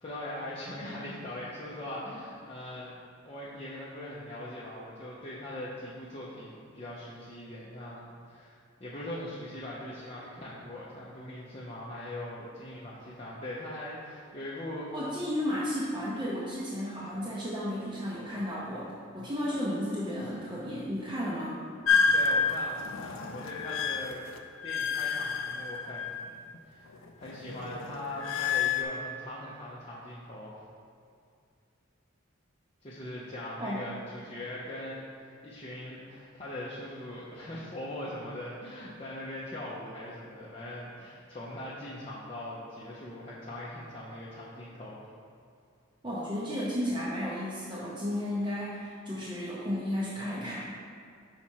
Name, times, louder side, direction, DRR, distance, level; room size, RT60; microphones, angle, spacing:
voice 1, 0.0-14.9 22.1-26.3 26.7-26.9 27.2-30.6 32.8-45.1, left 1 dB, 30° left, -7 dB, 0.6 m, -41 dB
voice 2, 14.9-21.6 33.6-33.9 46.0-50.7, equal, 25° right, -8 dB, 0.7 m, -33 dB
sound 1, 21.9-26.6 26.9-28.8, left 5 dB, 75° left, 0.4 m, -29 dB
5.8 x 4.3 x 4.4 m, 2.3 s
head